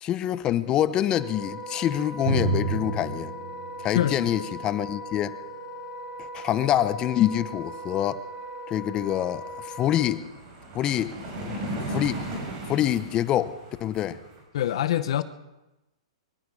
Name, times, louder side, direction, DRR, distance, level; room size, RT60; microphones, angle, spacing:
voice 1, 0.0-3.3 3.8-5.4 6.2-8.2 8.7-10.2 10.7-11.2 11.4-12.2 12.7-13.5 13.8-14.2, left 11 dB, 25° left, 14 dB, 0.7 m, -26 dB
Wind instrument woodwind instrument, 1.1-10.1, equal, 25° right, 2.0 m, -39 dB
Drum, 2.3-5.8, right 3 dB, 75° right, 5.6 m, -31 dB
voice 2, 3.9-4.3 14.5-15.2, left 12 dB, 65° left, 12 dB, 0.8 m, -25 dB
sound 1, 8.3-8.4 8.7-14.4, right 1 dB, 40° right, 5.7 m, -37 dB
23.5 x 12.0 x 4.8 m, 1.0 s
hypercardioid pair, 145°, 3 cm